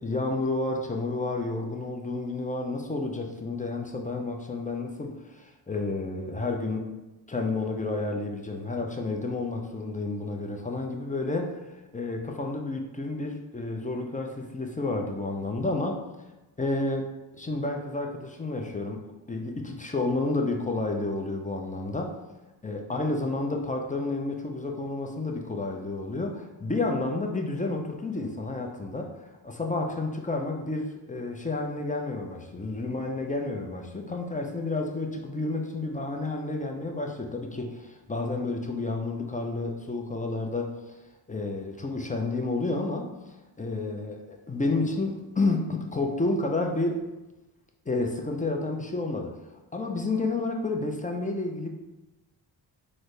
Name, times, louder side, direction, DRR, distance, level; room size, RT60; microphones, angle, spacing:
voice 1, 0.0-6.9 7.3-11.6 11.9-16.1 16.6-17.1 17.4-19.0 19.3-22.2 22.6-29.1 29.4-41.0 41.3-43.2 43.6-47.0 47.9-49.4 49.7-51.7, left 2 dB, 15° left, 2 dB, 0.4 m, -30 dB
3.9 x 2.1 x 3.2 m, 1.1 s
cardioid pair, 45°, 48 cm